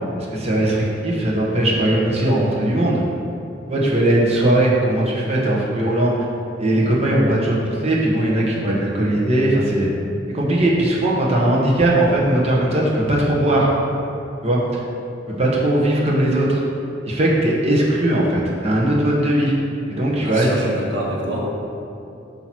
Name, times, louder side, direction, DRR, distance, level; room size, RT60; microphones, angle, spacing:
voice 1, 0.2-3.0 3.7-6.1 6.6-9.9 10.3-13.7 14.4-14.8 15.4-16.6 17.0-19.5 19.9-20.5, right 1 dB, 35° right, -4 dB, 0.9 m, -19 dB
voice 2, 20.2-21.5, equal, 90° right, -3 dB, 1.4 m, -26 dB
8.3 x 2.8 x 6.0 m, 2.7 s
head